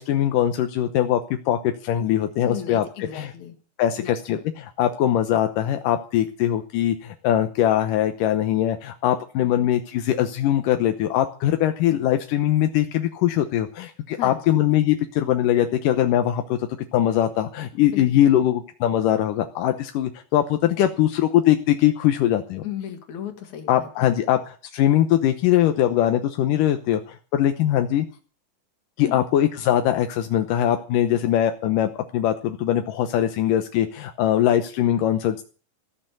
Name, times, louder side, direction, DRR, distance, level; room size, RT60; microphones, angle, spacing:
voice 1, 0.0-2.8 3.1-3.3 3.8-22.6 23.7-28.1 29.0-35.4, left 11 dB, 85° left, 7 dB, 2.6 m, -21 dB
voice 2, 2.4-3.6 4.0-4.1 14.1-14.6 17.8-18.4 22.6-23.9 29.0-29.2, left 10 dB, 65° left, 6 dB, 3.3 m, -35 dB
17.0 x 6.8 x 9.2 m, 0.39 s
omnidirectional pair, 3.7 m